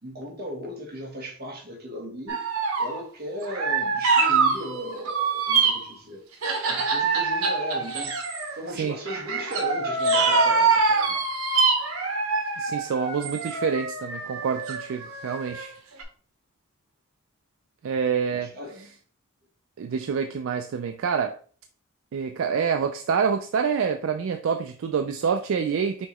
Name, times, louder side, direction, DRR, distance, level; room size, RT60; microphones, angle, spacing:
voice 1, 0.0-2.4 2.8-6.2 6.7-11.2 18.3-18.9, equal, 45° right, 1.1 m, -37 dB
sound 1, 2.3-3.0 3.4-5.9 6.4-8.6 9.1-15.7 16.0-16.1, right 4 dB, 90° right, 0.9 m, -24 dB
voice 2, 12.6-15.7 17.8-18.5 19.8-21.4 22.1-26.1, right 6 dB, 65° right, 0.3 m, -27 dB
5.7 x 2.9 x 3.0 m
head